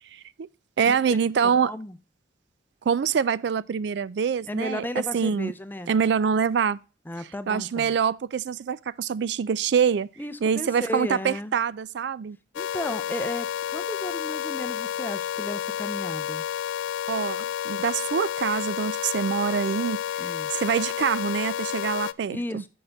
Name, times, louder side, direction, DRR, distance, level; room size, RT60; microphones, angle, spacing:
voice 1, 0.1-0.5 0.8-1.7 2.9-4.8 5.1-5.5 5.9-6.8 7.5-10.1 10.4-12.4 17.1-22.6, right 7 dB, 65° right, 0.3 m, -25 dB
voice 2, 1.4-2.0 4.5-5.9 7.1-8.0 10.2-11.5 12.5-13.5 13.7-16.4 20.2-20.5 22.3-22.7, left 1 dB, 10° left, 0.5 m, -34 dB
sound 1, 12.5-22.1, left 9 dB, 85° left, 0.3 m, -30 dB
6.5 x 5.8 x 6.4 m
head